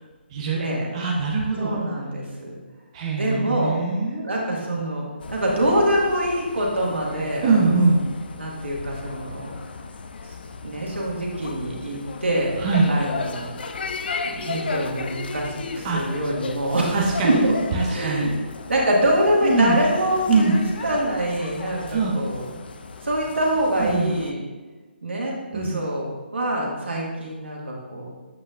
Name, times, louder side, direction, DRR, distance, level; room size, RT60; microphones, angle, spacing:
voice 1, 0.3-0.6 0.9-1.8 2.9-4.2 7.4-8.0 12.6-12.9 15.8-16.0 16.9-17.4 17.7-18.3 19.4-19.8 20.3-20.7 21.9-22.2 23.8-24.2 25.5-25.8, right 3 dB, 30° right, -2 dB, 0.8 m, -22 dB
voice 2, 1.6-2.5 3.2-3.7 4.2-7.8 8.4-9.5 10.6-12.5 12.9-13.5 14.2-17.5 17.9-18.3 18.7-20.6 20.8-22.5 23.0-24.4 25.0-28.1, right 1 dB, 85° right, -3 dB, 1.9 m, -25 dB
sound 1, 5.2-24.3, left 4 dB, 55° left, 0.5 m, -35 dB
8.2 x 5.5 x 2.5 m, 1.3 s
figure-of-eight pair, 155°, 6 cm